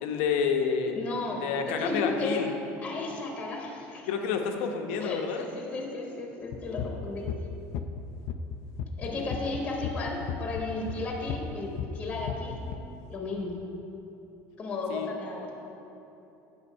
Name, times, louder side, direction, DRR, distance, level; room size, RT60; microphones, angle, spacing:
voice 1, 0.0-1.0 1.4-2.5 4.1-5.4 14.9-15.1, left 6 dB, 85° left, 4 dB, 1.0 m, -29 dB
voice 2, 0.9-2.4 2.8-4.0 5.0-7.3 9.0-12.6 13.1-13.6 14.6-15.5, left 3 dB, 20° left, 0 dB, 1.2 m, -34 dB
sound 1, 6.5-12.8, left 7 dB, 55° left, 0.5 m, -35 dB
9.6 x 6.6 x 5.5 m, 3.0 s
cardioid pair, 170°, 6 cm